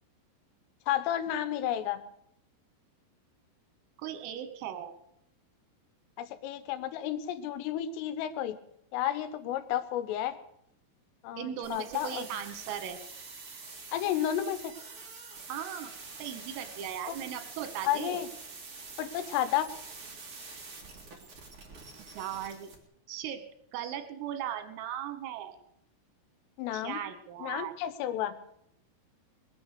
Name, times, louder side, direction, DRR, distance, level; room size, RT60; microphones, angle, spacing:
voice 1, 0.9-2.0 6.2-8.6 8.9-10.4 11.2-12.4 13.9-14.7 17.1-17.2 17.8-18.3 19.0-19.7 26.6-27.0 27.4-28.4, left 11 dB, 85° left, 11 dB, 3.5 m, -32 dB
voice 2, 4.0-5.0 11.4-13.0 15.5-15.9 16.2-18.2 22.2-22.7 23.1-23.4 23.7-25.6 26.7-27.7, right 10 dB, 90° right, 8 dB, 4.0 m, -38 dB
sound 1, 11.6-22.7, right 4 dB, 40° right, 2.1 m, -46 dB
21.0 x 8.4 x 6.6 m, 0.74 s
omnidirectional pair, 5.8 m